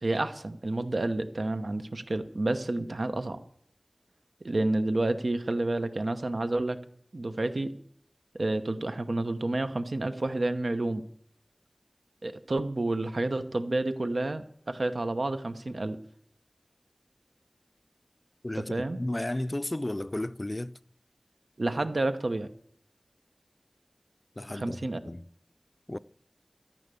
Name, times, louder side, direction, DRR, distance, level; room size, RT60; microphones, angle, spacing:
voice 1, 0.0-3.4 4.4-6.8 7.1-7.7 8.3-11.0 12.2-16.0 18.5-19.0 21.6-22.5 24.5-25.0, right 2 dB, 80° right, 0.9 m, -30 dB
voice 2, 18.4-20.8 24.4-24.8 25.1-25.3 25.9-26.0, left 1 dB, 35° left, 0.5 m, -33 dB
13.5 x 11.0 x 6.9 m
wide cardioid pair, 45°, 0 cm